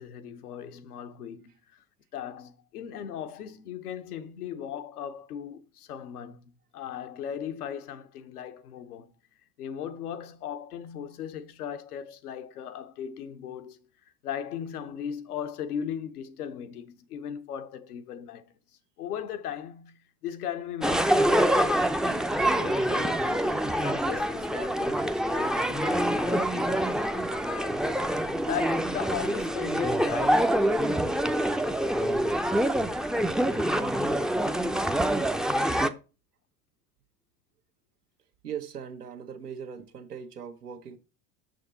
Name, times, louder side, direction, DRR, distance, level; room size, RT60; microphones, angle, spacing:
voice 1, 0.0-1.8 2.1-9.1 9.6-13.9 14.2-18.4 19.0-30.7, left 9 dB, 80° left, 1.0 m, -38 dB
sound 1, 20.8-35.9, right 1 dB, ahead, 0.5 m, -26 dB
voice 2, 38.4-41.0, right 8 dB, 85° right, 1.4 m, -39 dB
6.6 x 6.5 x 4.1 m
hypercardioid pair, 75°, 45 cm